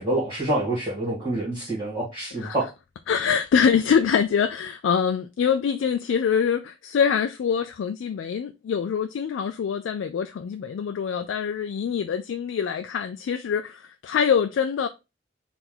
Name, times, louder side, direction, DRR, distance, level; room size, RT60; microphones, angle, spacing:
voice 1, 0.0-2.7, right 1 dB, 25° right, 1.9 m, -27 dB
voice 2, 3.1-14.9, left 7 dB, 80° left, 0.3 m, -24 dB
4.3 x 2.6 x 3.8 m
head